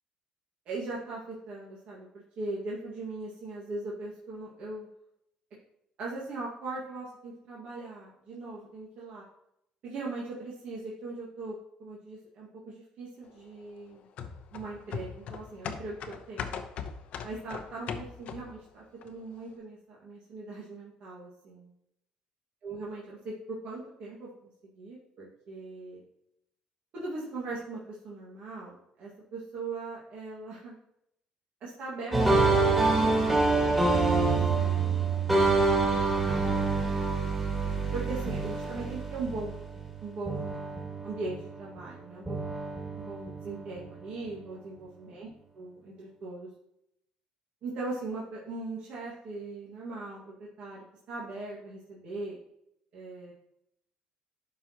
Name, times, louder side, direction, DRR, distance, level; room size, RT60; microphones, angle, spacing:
voice 1, 0.7-4.9 6.0-9.2 9.8-14.1 14.5-16.6 17.2-21.7 22.6-24.3 24.7-26.0 26.9-30.8 31.6-34.8 35.3-36.7 37.9-39.6 40.0-42.5 43.0-45.3 45.5-46.5 47.6-52.4 52.9-53.3, right 3 dB, 60° right, -5 dB, 1.8 m, -40 dB
sound 1, 14.2-18.6 19.0-19.1, left 7 dB, 65° left, 0.7 m, -39 dB
sound 2, 32.1-40.0 40.3-41.8 42.3-43.8, right 3 dB, 15° right, 2.3 m, -26 dB
11.5 x 4.5 x 2.9 m, 0.78 s
cardioid pair, 110°, 2 cm